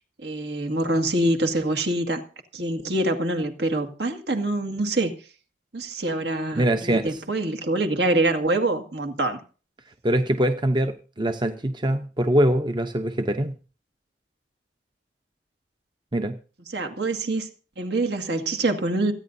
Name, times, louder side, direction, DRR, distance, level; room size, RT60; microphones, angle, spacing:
voice 1, 0.2-2.2 2.5-5.1 5.7-9.4 16.7-17.5 17.8-19.1, right 2 dB, 70° right, 2.1 m, -25 dB
voice 2, 6.6-7.2 10.0-13.6 16.1-16.4, right 1 dB, 25° right, 0.8 m, -23 dB
27.5 x 9.6 x 2.7 m
head